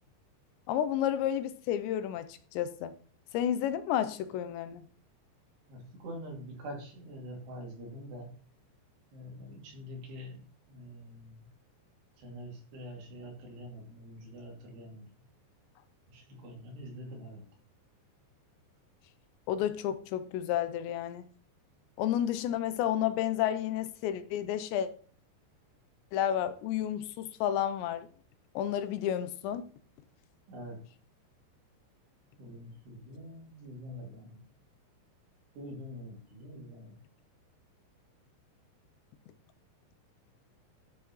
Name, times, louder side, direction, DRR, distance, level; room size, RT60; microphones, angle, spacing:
voice 1, 0.7-2.9 3.3-4.9 19.5-21.3 22.0-24.9 26.1-28.1 28.6-29.7, left 10 dB, 85° left, 2.8 m, -31 dB
voice 2, 5.7-8.3 9.1-10.4 10.7-11.3 12.2-15.0 16.1-17.4 30.5-30.8 32.4-34.4 35.6-36.9, equal, 65° right, 4.5 m, -45 dB
12.0 x 8.0 x 3.1 m
omnidirectional pair, 5.2 m